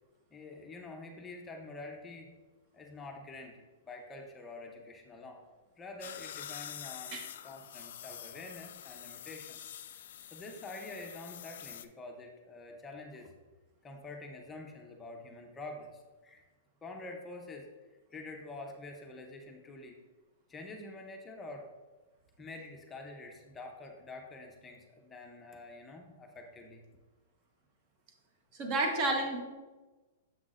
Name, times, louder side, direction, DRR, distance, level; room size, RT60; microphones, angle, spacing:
voice 1, 0.3-2.3 2.7-5.4 5.8-9.6 10.3-13.3 13.8-16.4 16.8-17.7 18.1-20.0 20.5-21.7 22.4-26.8, left 2 dB, 10° left, 1 dB, 0.7 m, -47 dB
sound 1, 6.0-11.9, left 10 dB, 65° left, 0.3 m, -46 dB
voice 2, 28.6-29.4, right 2 dB, 30° right, 2 dB, 1.1 m, -30 dB
7.2 x 5.9 x 2.5 m, 1.2 s
hypercardioid pair, 165°, 0 cm